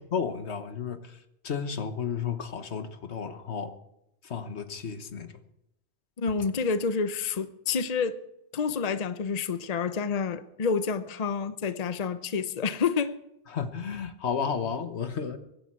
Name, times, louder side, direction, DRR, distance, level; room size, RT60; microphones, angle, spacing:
voice 1, 0.1-1.2 1.4-3.7 4.2-5.3 13.5-15.4, left 6 dB, 85° left, 1.4 m, -32 dB
voice 2, 6.2-8.2 8.5-13.1, left 5 dB, 40° left, 0.8 m, -28 dB
24.0 x 10.5 x 4.6 m
omnidirectional pair, 1.1 m